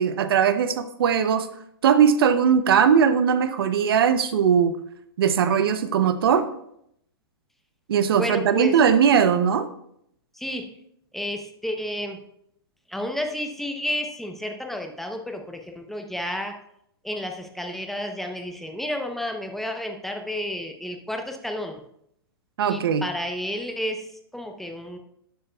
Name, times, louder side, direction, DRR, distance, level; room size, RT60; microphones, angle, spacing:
voice 1, 0.0-1.5 1.8-4.8 5.2-6.4 7.9-9.7 22.6-23.0, right 7 dB, 70° right, 11 dB, 0.7 m, -19 dB
voice 2, 8.1-8.8 10.3-10.7 11.1-12.2 12.9-16.5 17.0-21.8 22.7-25.0, left 1 dB, ahead, 4 dB, 0.8 m, -31 dB
12.0 x 7.9 x 2.3 m, 0.73 s
hypercardioid pair, 120°, 13 cm